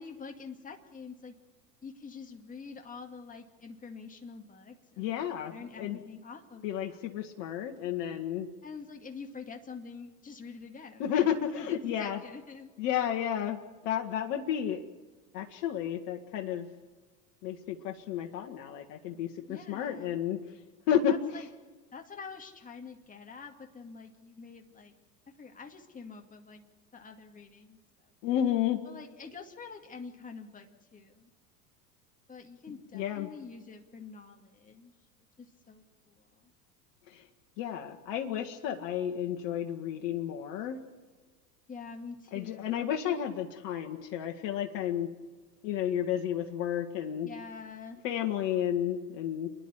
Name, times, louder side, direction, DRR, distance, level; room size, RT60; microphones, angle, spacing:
voice 1, 0.0-1.4 1.8-7.0 8.6-13.0 19.4-20.2 21.0-21.5 21.9-25.0 25.4-26.6 26.9-28.1 28.8-31.3 32.3-34.9 35.4-36.5 41.7-42.9 47.2-48.0, left 5 dB, 15° left, 3 dB, 2.2 m, -46 dB
voice 2, 5.0-6.0 6.6-8.5 11.0-12.2 12.8-14.8 15.3-16.7 17.4-20.4 20.9-21.1 28.2-28.8 32.9-33.3 37.1-37.2 37.6-40.8 42.3-45.1 45.6-47.3 48.0-49.5, left 10 dB, 55° left, 3 dB, 1.8 m, -32 dB
28.5 x 10.5 x 9.9 m, 1.3 s
hypercardioid pair, 90°, 47 cm